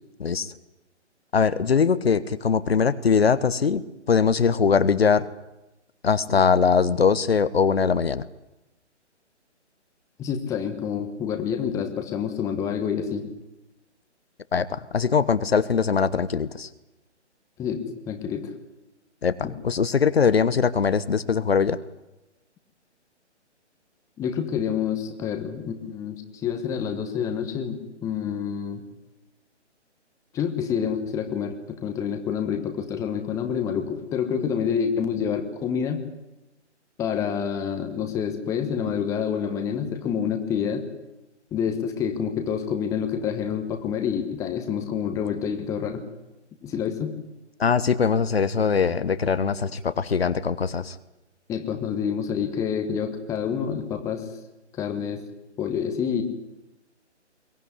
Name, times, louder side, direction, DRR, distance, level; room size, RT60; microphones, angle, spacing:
voice 1, 0.2-0.5 1.3-5.3 6.0-8.2 14.5-16.7 19.2-21.8 47.6-51.0, left 6 dB, 60° left, 14 dB, 1.1 m, -21 dB
voice 2, 10.2-13.2 17.6-18.5 19.4-19.5 24.2-28.8 30.3-36.0 37.0-40.8 41.5-46.0 46.6-47.1 51.5-54.3 54.7-55.2 55.6-56.2, left 7 dB, 10° left, 7 dB, 1.3 m, -28 dB
22.0 x 17.0 x 9.8 m, 0.97 s
figure-of-eight pair, 140°, 36 cm